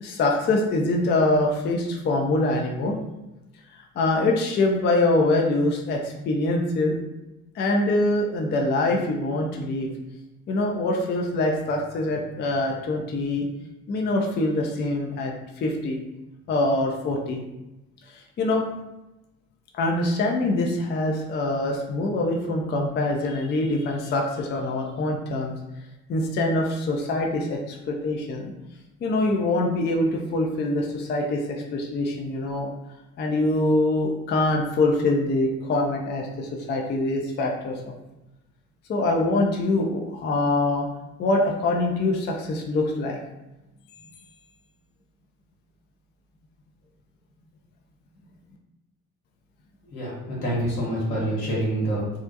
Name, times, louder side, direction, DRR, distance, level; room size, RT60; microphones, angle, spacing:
voice 1, 0.0-3.0 4.0-6.9 7.6-9.9 10.5-13.5 13.9-16.0 16.5-17.4 18.4-18.6 19.7-25.5 26.1-28.5 29.0-32.7 33.2-37.8 38.9-40.9 41.2-43.2, left 2 dB, 25° left, 0 dB, 0.4 m, -24 dB
voice 2, 49.8-52.1, right 1 dB, 75° left, -5 dB, 1.2 m, -26 dB
2.4 x 2.1 x 2.7 m, 0.98 s
figure-of-eight pair, 50°, 45 cm